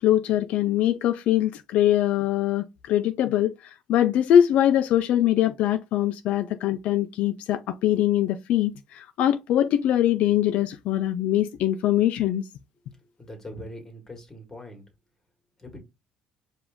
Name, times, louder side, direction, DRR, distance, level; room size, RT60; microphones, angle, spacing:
voice 1, 0.0-12.4, left 11 dB, 70° left, 0.4 m, -22 dB
voice 2, 12.9-14.8 15.6-15.8, left 1 dB, 15° left, 1.8 m, -42 dB
4.9 x 2.5 x 3.6 m
cardioid pair, 125°, 2 cm